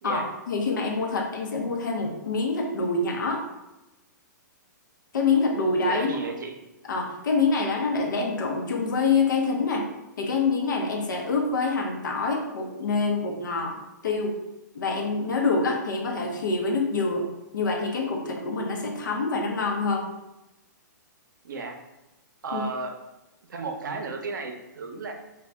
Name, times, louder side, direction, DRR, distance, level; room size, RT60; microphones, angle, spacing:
voice 1, 0.5-3.4 5.1-6.1 6.9-9.8 10.2-13.7 14.0-14.3 14.7-17.3 17.5-20.0 22.5-22.6, left 4 dB, 80° left, 1 dB, 0.7 m, -26 dB
voice 2, 5.9-6.5 21.4-21.8 22.4-22.9 23.5-25.1, right 4 dB, 80° right, 3 dB, 0.6 m, -33 dB
2.7 x 2.2 x 3.3 m, 0.99 s
hypercardioid pair, 130°, 10 cm